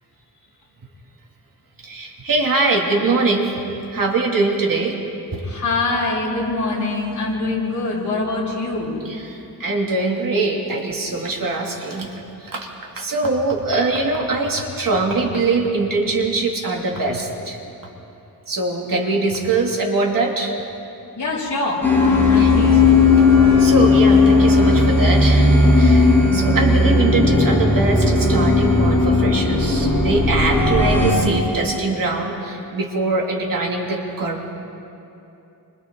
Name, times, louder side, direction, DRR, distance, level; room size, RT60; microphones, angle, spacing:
voice 1, 1.8-3.6 3.9-5.0 5.3-5.4 9.0-12.7 13.0-17.6 18.5-20.6 22.4-22.5 23.5-34.5, right 3 dB, 55° right, -1 dB, 2.8 m, -22 dB
voice 2, 5.4-9.0 21.2-21.8 22.3-22.8, left 2 dB, 50° left, -5 dB, 7.2 m, -24 dB
sound 1, 21.8-31.2, left 3 dB, 5° left, 6.8 m, -15 dB
30.0 x 25.5 x 3.9 m, 2.8 s
wide cardioid pair, 140°, 39 cm